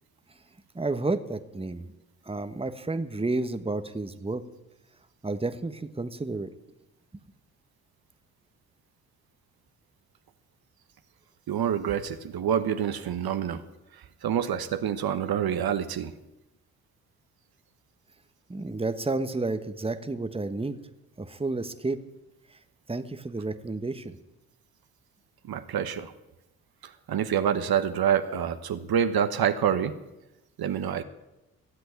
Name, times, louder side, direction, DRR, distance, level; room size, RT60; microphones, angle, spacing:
voice 1, 0.7-1.9 2.2-4.4 5.2-6.5 18.5-20.8 21.2-22.0 22.9-24.2, right 3 dB, 15° right, 10 dB, 1.2 m, -31 dB
voice 2, 11.5-13.6 13.9-16.1 25.4-26.1 26.8-29.9 30.6-31.0, right 8 dB, 65° right, 9 dB, 1.1 m, -27 dB
15.0 x 7.9 x 9.3 m, 0.97 s
hypercardioid pair, 45°, 40 cm